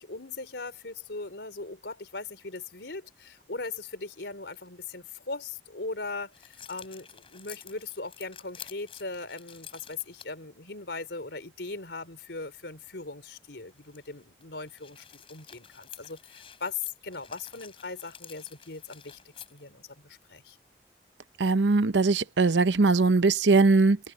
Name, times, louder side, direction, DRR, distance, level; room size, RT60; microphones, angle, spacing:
voice 1, 0.0-19.2 19.5-20.6, left 3 dB, 80° left, 3.7 m, -39 dB
sound 1, 3.5-3.9 4.5-4.7 6.3-10.3 11.0-11.1 13.7-19.9, left 8 dB, 30° left, 5.7 m, -50 dB
voice 2, 21.4-24.0, right 3 dB, 90° right, 0.8 m, -21 dB
head